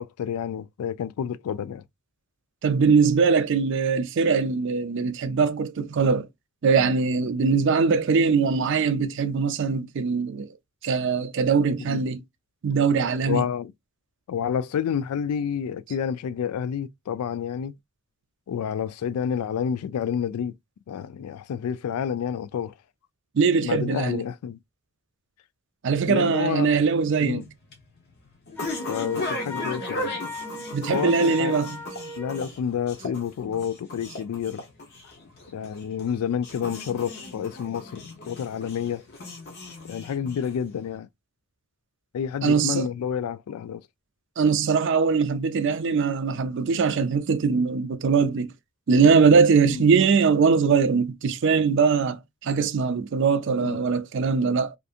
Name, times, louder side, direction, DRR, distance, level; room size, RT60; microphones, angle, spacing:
voice 1, 0.0-1.8 11.9-12.0 13.3-13.7 14.3-17.7 18.5-20.5 20.9-22.7 23.6-24.6 26.1-26.7 27.2-27.4 28.9-30.2 30.9-31.5 32.1-34.6 35.5-39.0 39.8-41.1 42.1-43.8 49.7-49.9 53.6-53.8, left 8 dB, 80° left, 0.3 m, -29 dB
voice 2, 2.6-6.3 6.6-10.5 10.8-12.2 12.6-13.5 23.3-24.3 25.8-27.5 30.7-31.8 42.4-42.9 44.4-48.5 48.9-54.8, right 5 dB, 55° right, 0.4 m, -21 dB
sound 1, 27.2-40.8, left 1 dB, 45° left, 0.7 m, -37 dB
Wind instrument woodwind instrument, 28.6-32.5, left 2 dB, 10° left, 0.4 m, -37 dB
2.6 x 2.5 x 2.4 m
head